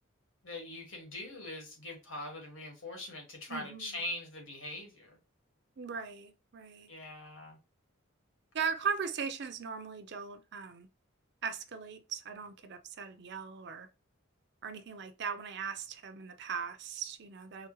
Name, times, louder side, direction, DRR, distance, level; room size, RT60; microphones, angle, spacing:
voice 1, 0.4-5.2 6.9-7.6, left 2 dB, 80° left, 1.5 m, -42 dB
voice 2, 3.5-4.0 5.8-6.9 8.5-10.9 11.4-13.9 14.6-17.7, right 6 dB, 55° right, 0.5 m, -39 dB
4.7 x 2.1 x 3.0 m
head